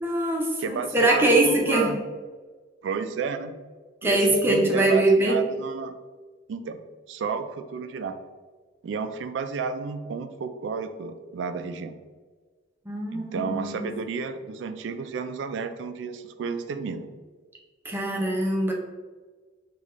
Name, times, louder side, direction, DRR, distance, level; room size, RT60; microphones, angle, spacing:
voice 1, 0.0-1.9 4.0-5.4 12.9-13.9 17.8-18.7, right 1 dB, 10° right, -1 dB, 0.5 m, -22 dB
voice 2, 0.6-2.0 2.8-3.6 4.0-5.9 6.5-8.2 8.8-12.0 13.1-17.1, right 5 dB, 70° right, 9 dB, 0.3 m, -32 dB
4.0 x 2.4 x 3.0 m, 1.4 s
head